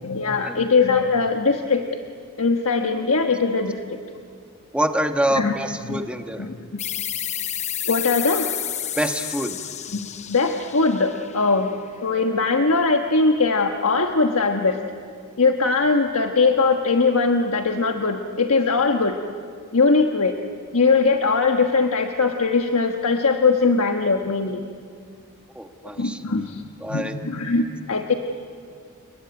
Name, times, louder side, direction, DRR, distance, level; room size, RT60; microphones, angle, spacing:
voice 1, 0.0-1.8 2.4-4.0 5.3-5.6 5.8-6.0 6.4-6.8 7.9-8.5 9.9-11.7 12.0-14.8 15.4-19.2 19.7-20.4 20.7-24.6 26.0-26.6 26.9-28.1, left 4 dB, 70° left, 4 dB, 1.4 m, -21 dB
voice 2, 4.7-6.5 9.0-9.6 25.5-26.2 26.8-27.2, right 1 dB, 5° right, 5 dB, 1.4 m, -25 dB
sound 1, 6.8-12.1, left 10 dB, 30° left, 0.7 m, -31 dB
29.5 x 20.5 x 9.5 m, 2.2 s
head